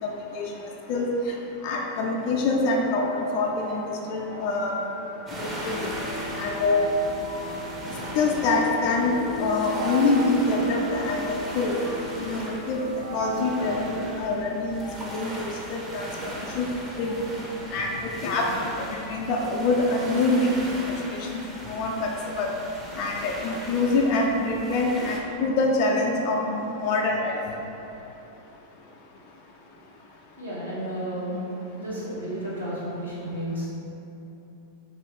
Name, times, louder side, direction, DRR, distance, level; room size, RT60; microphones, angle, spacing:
voice 1, 0.0-0.5 0.9-1.1 1.6-4.8 5.4-5.9 6.3-6.9 8.2-11.8 12.2-16.7 17.0-17.1 17.7-18.5 18.9-21.4 21.6-22.5 22.9-27.4, left 3 dB, 45° left, 0 dB, 0.3 m, -25 dB
sound 1, 1.7-14.1, left 1 dB, 50° right, 0.8 m, -38 dB
sound 2, 5.3-25.2, right 1 dB, 15° right, 0.6 m, -38 dB
voice 2, 30.4-31.4 31.8-33.6, right 1 dB, 80° right, -9 dB, 1.0 m, -32 dB
3.0 x 2.7 x 3.2 m, 2.9 s
figure-of-eight pair, 90°, 0 cm